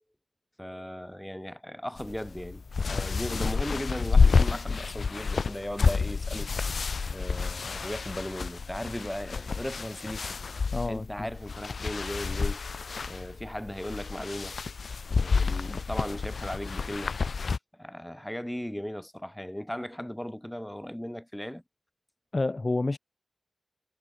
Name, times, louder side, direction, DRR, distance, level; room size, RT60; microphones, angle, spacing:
voice 1, 0.6-6.5 7.1-10.4 10.9-14.6 15.1-17.1 17.7-21.6, equal, 5° left, 7.4 m, -37 dB
sound 1, 2.0-17.6, left 4 dB, 80° left, 1.4 m, -29 dB
voice 2, 10.7-11.3 22.3-23.0, left 2 dB, 40° left, 0.9 m, -29 dB
wide cardioid pair, 75°, 0 cm